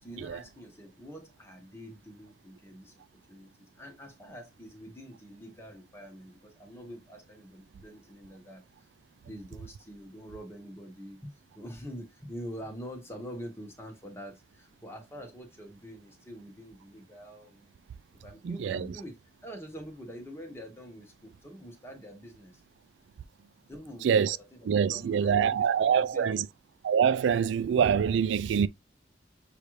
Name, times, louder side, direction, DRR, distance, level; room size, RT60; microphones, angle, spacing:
voice 1, 0.0-3.0 3.3-3.5 3.8-8.6 9.2-17.7 18.2-19.1 19.4-22.6 23.7-26.5, equal, 15° left, 1.0 m, -45 dB
voice 2, 18.4-18.9 24.0-24.4 24.7-26.5 26.8-28.7, right 7 dB, 90° right, 0.3 m, -25 dB
6.7 x 2.4 x 3.1 m
head